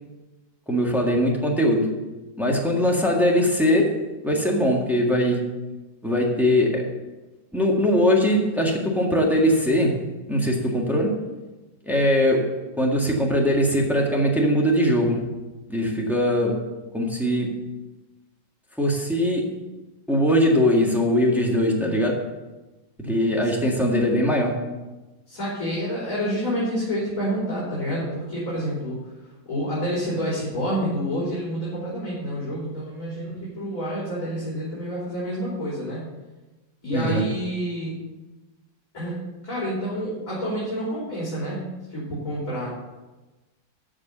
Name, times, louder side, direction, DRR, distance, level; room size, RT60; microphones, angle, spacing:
voice 1, 0.7-2.0 2.4-5.5 6.0-6.9 7.5-11.2 11.8-15.3 15.7-16.7 16.9-17.5 18.8-19.5 20.1-22.3 23.0-24.6 36.9-37.2, equal, ahead, -2 dB, 1.5 m, -21 dB
voice 2, 25.3-29.0 29.5-36.0 36.8-38.0 38.9-39.2 39.4-42.7, equal, 45° left, -7 dB, 3.6 m, -28 dB
13.0 x 5.0 x 6.7 m, 1.1 s
omnidirectional pair, 2.1 m